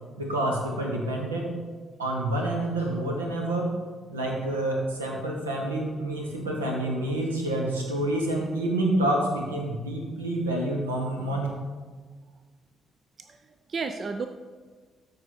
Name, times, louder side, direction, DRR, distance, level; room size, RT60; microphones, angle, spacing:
voice 1, 0.2-1.5 2.0-3.7 4.1-11.5, right 1 dB, 80° right, 0 dB, 1.3 m, -28 dB
voice 2, 13.2-14.3, right 4 dB, 40° right, 8 dB, 0.5 m, -33 dB
13.0 x 5.0 x 4.2 m, 1.5 s
figure-of-eight pair, 40°, 0 cm